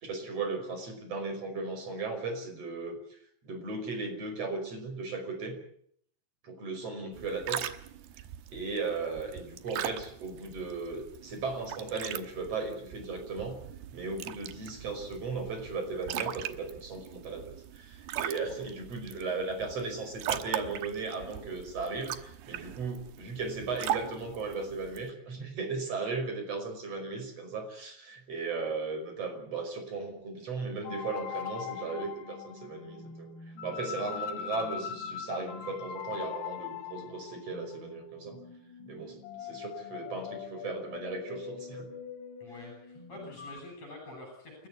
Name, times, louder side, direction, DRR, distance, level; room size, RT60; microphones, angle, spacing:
voice 1, 0.0-3.2 3.4-5.6 6.4-7.7 8.5-13.6 13.9-33.3 33.6-38.4 38.9-41.9, right 3 dB, 40° right, 6 dB, 6.2 m, -36 dB
sound 1, 7.1-25.1, right 12 dB, 75° right, 3.1 m, -40 dB
voice 2, 18.5-18.9 42.4-44.7, left 2 dB, 40° left, 2 dB, 7.7 m, -47 dB
sound 2, 30.8-43.6, left 7 dB, 80° left, 4.2 m, -41 dB
29.5 x 14.0 x 8.4 m, 0.66 s
omnidirectional pair, 4.7 m